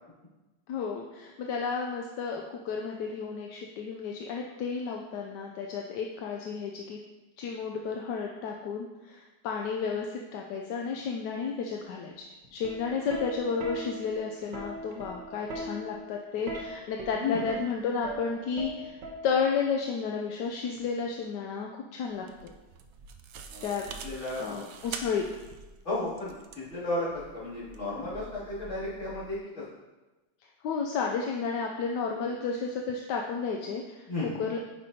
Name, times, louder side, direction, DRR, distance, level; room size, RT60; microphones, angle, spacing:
voice 1, 0.7-7.0 7.4-12.3 12.5-19.0 19.2-22.5 23.6-23.9 24.4-25.2 30.6-34.6, left 5 dB, 80° left, 1 dB, 1.2 m, -32 dB
Plucked string instrument, 12.4-19.7 20.8-21.1, right 1 dB, 90° right, 1.7 m, -40 dB
voice 2, 17.2-17.5 23.5-23.7 24.0-24.5 25.8-29.6 34.1-34.4, left 2 dB, 40° left, -10 dB, 2.9 m, -33 dB
sound 1, 22.0-29.4, right 5 dB, 70° right, 0.8 m, -46 dB
9.2 x 5.2 x 2.8 m, 1.1 s
omnidirectional pair, 1.9 m